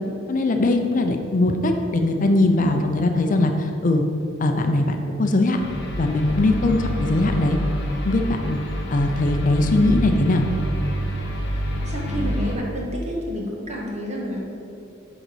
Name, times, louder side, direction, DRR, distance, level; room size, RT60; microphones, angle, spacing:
voice 1, 0.3-4.0 4.4-5.6 6.0-7.6 8.0-8.6 8.9-10.5, left 2 dB, 40° left, 5 dB, 0.5 m, -20 dB
sound 1, 5.6-12.6, equal, 60° left, 1.2 m, -27 dB
voice 2, 11.8-14.4, equal, 35° right, -2 dB, 1.5 m, -29 dB
9.1 x 4.0 x 6.3 m, 2.6 s
head